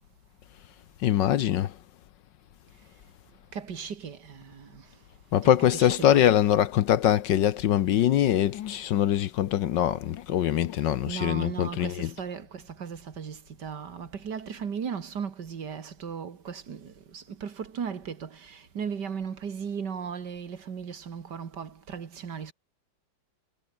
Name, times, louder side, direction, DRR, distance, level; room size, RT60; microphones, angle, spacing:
voice 1, 1.0-1.7 5.3-12.1, left 11 dB, 65° left, 1.4 m, -23 dB
voice 2, 3.5-4.8 5.4-6.4 11.1-22.5, right 7 dB, 55° right, 2.2 m, -37 dB
omnidirectional pair, 2.2 m